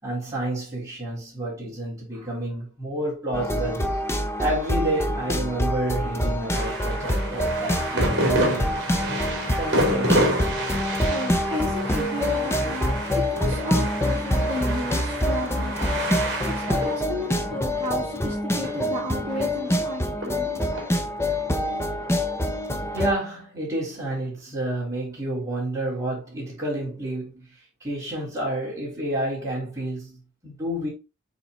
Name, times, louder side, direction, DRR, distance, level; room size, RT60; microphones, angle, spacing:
voice 1, 0.0-3.9 4.4-8.7 9.6-10.3 22.9-27.5 27.8-30.9, right 1 dB, 15° right, 4.0 m, -29 dB
sound 1, 3.3-23.1, left 1 dB, 10° left, 0.7 m, -26 dB
sound 2, 6.5-19.8 20.2-22.2 22.8-23.0, right 1 dB, 50° right, 3.0 m, -29 dB
voice 2, 11.1-15.7 16.4-20.6, left 1 dB, 30° right, 4.3 m, -33 dB
7.2 x 4.0 x 3.9 m
head